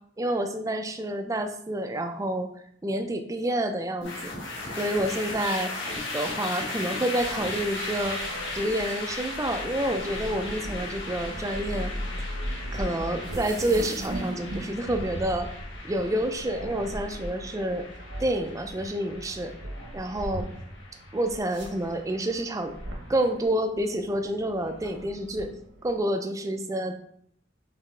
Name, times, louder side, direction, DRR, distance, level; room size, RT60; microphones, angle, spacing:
voice 1, 0.2-2.5 2.8-4.3 4.8-5.7 6.1-8.2 8.5-11.9 12.7-15.5 15.8-17.9 18.2-19.6 19.9-20.5 21.1-22.8 23.1-25.5 25.8-26.9, right 1 dB, 15° right, 7 dB, 0.4 m, -28 dB
sound 1, 4.0-23.3, left 2 dB, 75° left, 1.3 m, -37 dB
sound 2, 7.2-26.0, right 1 dB, 75° right, 1.0 m, -38 dB
4.7 x 3.3 x 3.3 m, 0.68 s
head